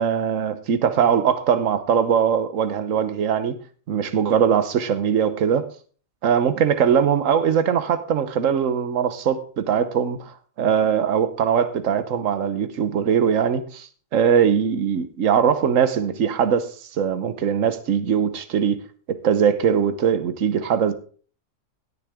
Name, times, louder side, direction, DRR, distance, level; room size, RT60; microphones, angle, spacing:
voice 1, 0.0-3.5 3.9-5.7 6.2-16.7 17.0-18.8 19.1-20.9, right 7 dB, 65° right, 1.4 m, -21 dB
17.0 x 6.6 x 3.6 m
omnidirectional pair, 1.5 m